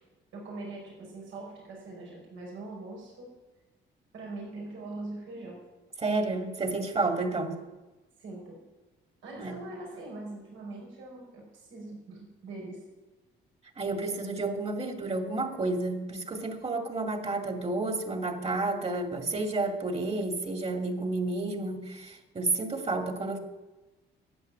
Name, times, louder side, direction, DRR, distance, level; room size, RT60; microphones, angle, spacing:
voice 1, 0.3-3.3 4.1-5.6 7.3-7.5 8.2-8.6 9.2-12.8, right 2 dB, 80° right, -3 dB, 5.9 m, -42 dB
voice 2, 6.0-7.6 9.4-9.6 13.8-23.4, right 3 dB, 30° right, 4 dB, 2.3 m, -31 dB
12.5 x 8.5 x 9.3 m, 1.1 s
cardioid pair, 90°, 20 cm